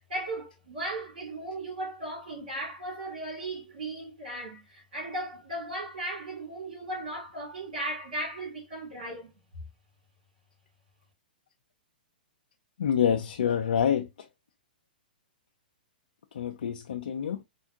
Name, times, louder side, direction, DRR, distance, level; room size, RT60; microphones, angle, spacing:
voice 1, 0.1-9.3, right 1 dB, 65° right, 2.7 m, -36 dB
voice 2, 12.8-14.1 16.3-17.4, left 8 dB, 65° left, 0.5 m, -27 dB
4.5 x 2.1 x 2.7 m
figure-of-eight pair, 110°, 5 cm